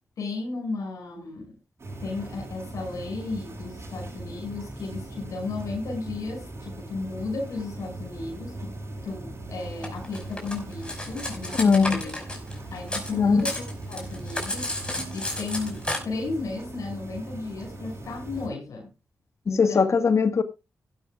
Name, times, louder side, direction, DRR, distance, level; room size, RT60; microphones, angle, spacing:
voice 1, 0.2-1.6 2.0-8.8 9.0-12.1 12.7-18.9 19.5-19.9, left 3 dB, 90° left, 6.0 m, -34 dB
sound 1, 1.8-18.5, right 2 dB, 50° right, 7.1 m, -39 dB
Cutlery silverware, 9.8-13.1 13.4-16.0, left 1 dB, 15° left, 5.4 m, -32 dB
voice 2, 11.6-12.0 13.2-13.4 19.5-20.4, left 5 dB, 60° left, 1.4 m, -19 dB
16.0 x 12.5 x 2.4 m
cardioid pair, 65°, 6 cm